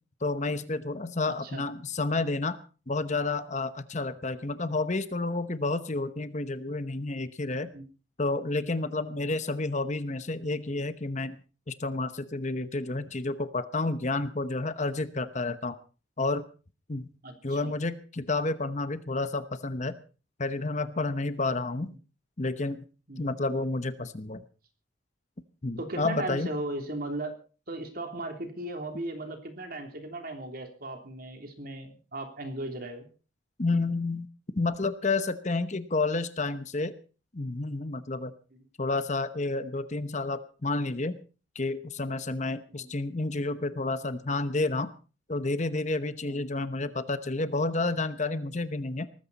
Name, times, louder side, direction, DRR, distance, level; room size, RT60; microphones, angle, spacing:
voice 1, 0.2-2.6 2.9-7.7 8.2-11.4 11.7-15.8 16.2-16.5 16.9-17.1 17.4-20.0 20.4-21.9 22.4-22.8 23.2-24.4 25.6-26.5 33.6-34.3 34.6-36.9 37.3-38.3 38.8-41.2 41.5-44.9 45.3-49.1, left 3 dB, 35° left, 12 dB, 0.9 m, -30 dB
voice 2, 1.3-1.6 7.7-7.9 9.1-9.3 17.2-17.7 21.8-22.0 23.1-23.3 25.8-27.4 27.7-33.1 38.5-38.6 42.7-42.9 46.3-46.4, right 2 dB, 50° right, 5 dB, 3.2 m, -37 dB
19.0 x 14.5 x 4.1 m, 0.37 s
head